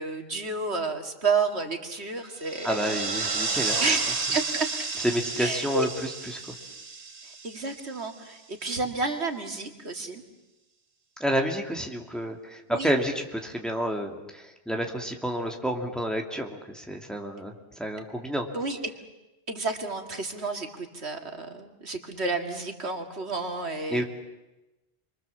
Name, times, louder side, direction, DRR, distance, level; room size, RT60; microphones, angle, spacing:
voice 1, 0.0-4.9 5.4-5.9 7.4-10.2 12.7-12.9 18.5-18.9 19.5-24.0, right 3 dB, 90° right, 4 dB, 2.5 m, -31 dB
sound 1, 2.3-8.2, right 4 dB, 40° right, 1.2 m, -32 dB
voice 2, 2.6-3.8 5.0-6.5 11.2-18.5 23.9-24.0, equal, ahead, 1 dB, 2.6 m, -29 dB
29.5 x 23.5 x 7.3 m, 1.0 s
omnidirectional pair, 1.1 m